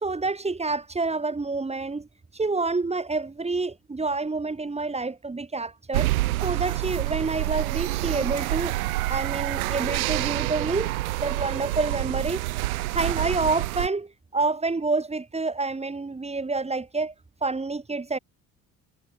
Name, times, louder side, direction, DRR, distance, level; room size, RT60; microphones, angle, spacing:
voice 1, 0.0-2.1 2.3-6.1 6.4-8.7 9.1-12.4 12.9-17.1 17.4-18.2, right 3 dB, 15° right, 1.7 m, -28 dB
sound 1, 5.9-13.9, right 18 dB, 75° right, 1.9 m, -27 dB
figure-of-eight pair, 55°, 43 cm